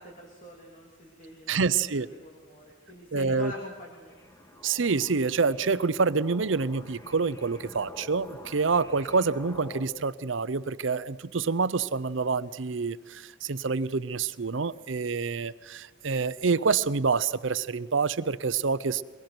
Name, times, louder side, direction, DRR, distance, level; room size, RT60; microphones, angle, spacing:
voice 1, 0.0-4.2, left 1 dB, 45° left, -1 dB, 2.8 m, -45 dB
voice 2, 1.5-2.1 3.1-3.5 4.6-19.0, right 4 dB, 70° right, 15 dB, 0.7 m, -27 dB
sound 1, 4.1-9.9, left 1 dB, 15° left, 2.0 m, -47 dB
23.0 x 22.0 x 6.1 m, 1.4 s
head